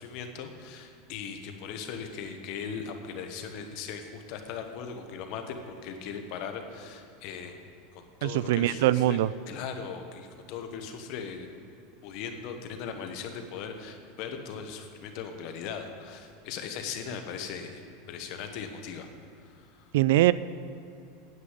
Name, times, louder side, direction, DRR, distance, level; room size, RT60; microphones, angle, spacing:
voice 1, 0.0-7.5 7.9-9.2 9.5-11.5 12.0-17.8 18.1-19.1 19.4-19.8, left 6 dB, 50° left, 5 dB, 1.2 m, -39 dB
voice 2, 8.2-9.3 19.9-20.3, right 15 dB, 70° right, 17 dB, 0.3 m, -22 dB
9.5 x 7.7 x 8.2 m, 2.6 s
supercardioid pair, 155°, 0 cm